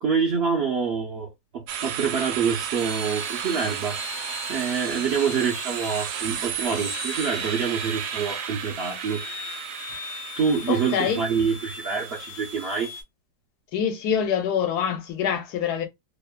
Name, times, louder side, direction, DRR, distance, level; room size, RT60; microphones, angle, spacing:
voice 1, 0.0-4.0 4.5-9.5 10.4-12.9, right 6 dB, 65° right, 0.6 m, -26 dB
sound 1, 1.7-12.7, right 9 dB, 85° right, 1.1 m, -33 dB
sound 2, 2.8-13.0, left 5 dB, 55° left, 0.7 m, -40 dB
voice 2, 10.7-11.2 13.7-15.9, left 8 dB, 85° left, 1.3 m, -25 dB
3.0 x 2.1 x 2.3 m
omnidirectional pair, 1.7 m